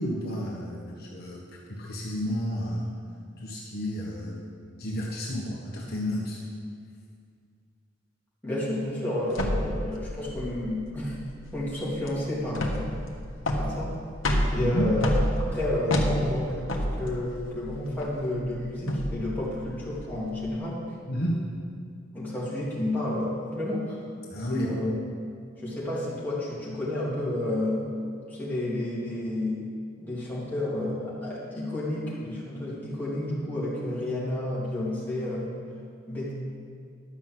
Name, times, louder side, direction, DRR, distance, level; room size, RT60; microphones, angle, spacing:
voice 1, 0.0-1.4 1.7-2.9 3.4-4.4 4.8-6.4 14.6-14.8 21.1-21.4 24.3-24.7, equal, 55° left, -3 dB, 1.5 m, -31 dB
voice 2, 8.4-11.2 11.5-13.0 13.6-14.0 14.4-20.8 22.1-24.0 24.5-24.9 25.6-27.9 28.3-29.6 30.0-35.6 36.1-36.3, left 1 dB, 10° left, -8 dB, 3.1 m, -31 dB
sound 1, 9.3-20.5, equal, 80° left, 1.4 m, -30 dB
11.5 x 6.3 x 7.7 m, 2.2 s
head